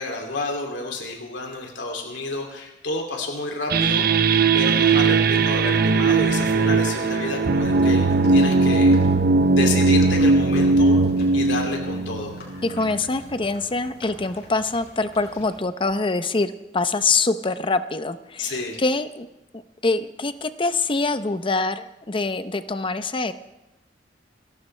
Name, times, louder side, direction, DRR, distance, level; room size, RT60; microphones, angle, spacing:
voice 1, 0.0-8.9 9.5-11.0 11.3-12.3 18.4-18.8, left 2 dB, 90° left, 1 dB, 2.7 m, -30 dB
sound 1, 3.7-13.1, right 3 dB, 60° right, 0.7 m, -19 dB
sound 2, 4.5-15.6, left 1 dB, 65° left, 5.6 m, -44 dB
voice 2, 12.6-19.3 19.5-23.3, left 3 dB, 30° left, 11 dB, 0.7 m, -25 dB
29.5 x 12.5 x 3.3 m, 0.94 s
head